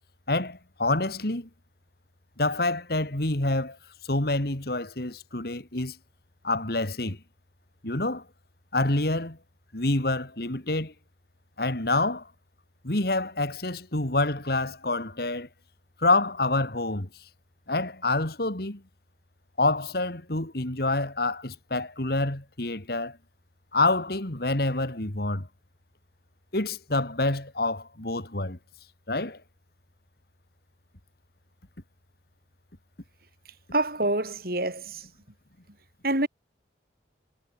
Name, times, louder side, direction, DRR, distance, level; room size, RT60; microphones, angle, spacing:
voice 1, 0.3-1.5 2.4-3.8 4.1-6.0 6.4-7.2 7.8-8.2 8.7-9.4 9.7-10.9 11.6-12.3 12.8-15.5 16.0-17.1 17.7-18.8 19.6-23.2 23.7-25.5 26.5-28.6 29.1-29.4, left 2 dB, 60° left, 2.6 m, -27 dB
voice 2, 33.7-35.1 36.0-36.3, right 2 dB, 55° right, 6.6 m, -26 dB
head